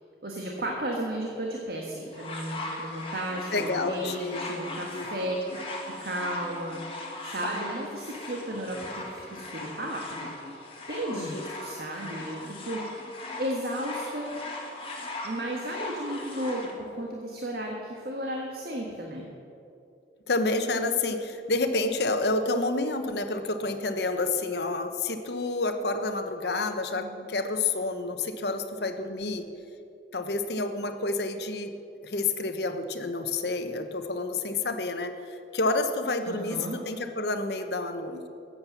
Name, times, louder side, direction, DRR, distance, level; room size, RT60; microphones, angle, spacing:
voice 1, 0.2-5.4 5.8-6.8 7.2-10.3 10.9-12.8 13.4-14.4 15.2-19.3 26.9-27.1 36.2-36.8, right 1 dB, 60° right, -1 dB, 1.4 m, -34 dB
sound 1, 2.1-16.7 17.6-17.7, left 2 dB, 30° left, 1.7 m, -39 dB
voice 2, 3.5-4.4 4.9-5.3 11.1-11.5 20.3-29.5 30.1-31.7 32.0-38.3, left 3 dB, 70° left, 7 dB, 1.0 m, -29 dB
14.0 x 8.7 x 7.2 m, 2.6 s
head